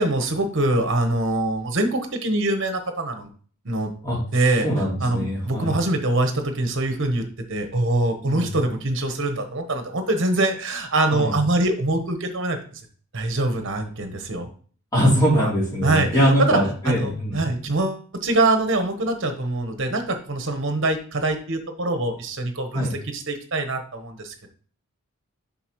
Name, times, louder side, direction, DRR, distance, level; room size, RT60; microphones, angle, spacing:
voice 1, 0.0-3.3 3.6-3.9 4.3-4.7 5.0-7.2 7.5-12.8 13.1-14.5 15.3-15.5 15.8-16.6 16.8-24.5, right 2 dB, 55° right, 6 dB, 1.1 m, -24 dB
voice 2, 4.6-5.7 8.2-8.5 11.1-11.3 14.9-17.4 22.7-22.9, equal, 15° left, -7 dB, 3.1 m, -22 dB
7.8 x 5.7 x 3.1 m, 0.44 s
head